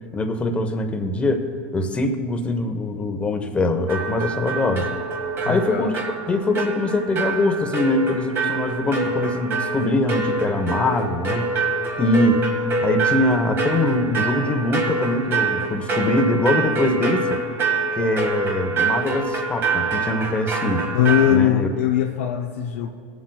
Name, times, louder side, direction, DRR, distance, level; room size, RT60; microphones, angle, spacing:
voice 1, 0.1-4.9 5.5-5.9 6.3-11.5 12.0-17.3 17.9-20.9 21.3-21.7, left 2 dB, 15° left, 5 dB, 1.0 m, -23 dB
sound 1, 3.9-21.4, right 4 dB, 30° right, 1.8 m, -26 dB
voice 2, 5.4-5.9 20.9-22.9, left 10 dB, 85° left, 2 dB, 0.6 m, -20 dB
20.5 x 7.5 x 2.3 m, 2.5 s
supercardioid pair, 125°, 7 cm